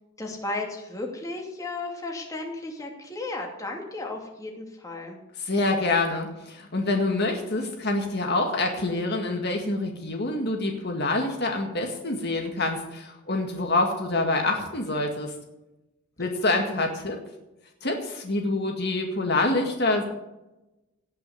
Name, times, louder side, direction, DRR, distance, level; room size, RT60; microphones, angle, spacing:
voice 1, 0.2-5.2, left 2 dB, 15° left, 0 dB, 2.6 m, -34 dB
voice 2, 5.4-15.3 16.2-17.2 17.8-20.0, left 2 dB, 50° left, 3 dB, 1.9 m, -26 dB
18.0 x 6.2 x 9.4 m, 0.96 s
head